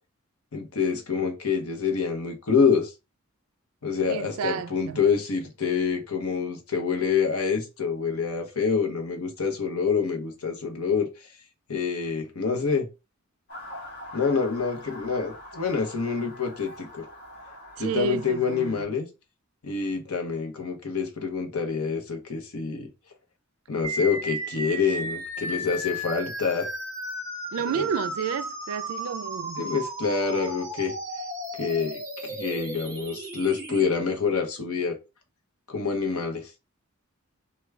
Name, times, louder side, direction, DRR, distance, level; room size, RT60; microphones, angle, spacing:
voice 1, 0.5-2.9 3.8-11.1 11.7-12.9 14.1-17.0 17.8-19.1 19.6-22.9 23.7-26.7 27.7-27.9 29.6-30.9 31.6-34.9 35.7-36.5, left 5 dB, 85° left, 0.8 m, -27 dB
voice 2, 4.1-5.0 17.8-18.8 27.5-29.6, right 6 dB, 70° right, 0.3 m, -31 dB
Motor vehicle (road) / Siren, 13.5-18.8, left 1 dB, 50° left, 1.3 m, -43 dB
sound 1, 23.8-33.8, right 1 dB, 15° right, 1.1 m, -34 dB
3.5 x 2.2 x 3.2 m
head